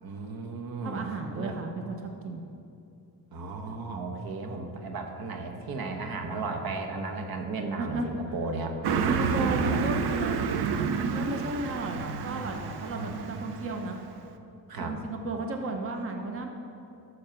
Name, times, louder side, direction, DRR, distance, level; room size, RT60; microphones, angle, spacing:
voice 1, 0.0-1.6 3.3-8.7 9.3-9.9 11.9-12.5 12.9-13.5 14.7-14.9, right 3 dB, 70° right, 4 dB, 1.2 m, -35 dB
voice 2, 0.8-2.4 7.8-8.1 9.1-14.0 14.7-16.5, right 2 dB, 35° right, 3 dB, 1.0 m, -34 dB
Car passing by, 8.8-13.8, right 6 dB, 85° right, 0.8 m, -30 dB
12.5 x 6.5 x 5.9 m, 2.7 s
cardioid pair, 120°, 38 cm